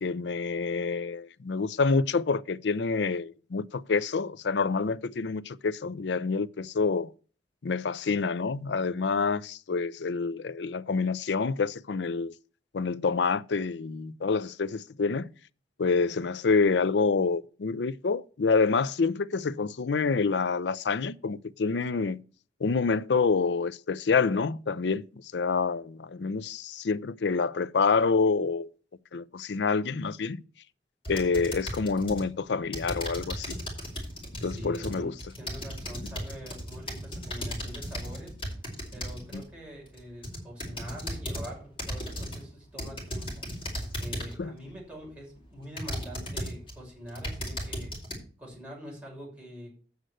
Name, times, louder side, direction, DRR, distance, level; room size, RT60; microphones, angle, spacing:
voice 1, 0.0-7.1 7.6-12.3 12.7-15.3 15.8-22.2 22.6-25.0 25.3-28.7 29.1-30.4 31.1-33.6 34.4-35.1 39.3-39.5 44.4-44.6, left 4 dB, 80° left, 0.5 m, -27 dB
sound 1, 31.1-32.3 32.7-39.5 40.0-41.5 41.8-42.4 42.8-44.4 45.0-45.1 45.8-46.7 47.1-48.2, equal, 30° left, 4.9 m, -36 dB
voice 2, 34.4-38.3 38.9-47.9 48.4-49.7, equal, 10° right, 5.8 m, -44 dB
8.0 x 6.5 x 7.7 m
head